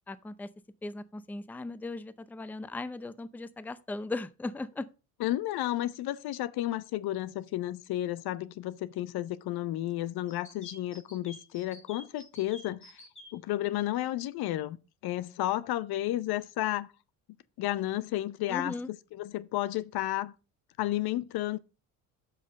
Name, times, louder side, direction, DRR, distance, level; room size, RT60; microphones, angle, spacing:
voice 1, 0.1-0.5 0.8-4.9 18.5-18.9, left 2 dB, 5° left, 0.5 m, -38 dB
voice 2, 5.2-13.0 13.3-16.9 17.6-18.8 19.2-20.3 20.8-21.6, left 14 dB, 60° left, 0.7 m, -32 dB
sound 1, 10.3-13.3, left 2 dB, 30° left, 2.8 m, -50 dB
7.2 x 5.8 x 5.2 m
supercardioid pair, 70°, 41 cm